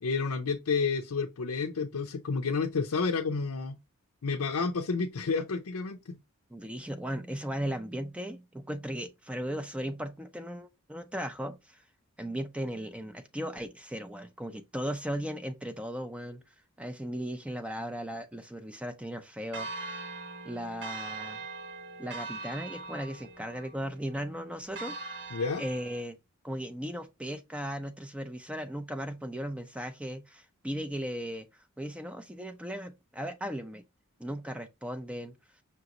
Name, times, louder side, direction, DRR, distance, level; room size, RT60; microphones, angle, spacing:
voice 1, 0.0-3.8 4.2-6.2 25.3-25.6, left 4 dB, 75° left, 0.5 m, -30 dB
voice 2, 6.5-11.8 12.2-16.4 16.8-20.0 20.4-21.4 22.0-26.2 26.4-31.5 31.8-33.8 34.2-35.3, equal, 5° right, 0.4 m, -37 dB
Church bell, 19.5-26.0, right 3 dB, 55° right, 1.0 m, -42 dB
5.8 x 2.9 x 2.4 m
head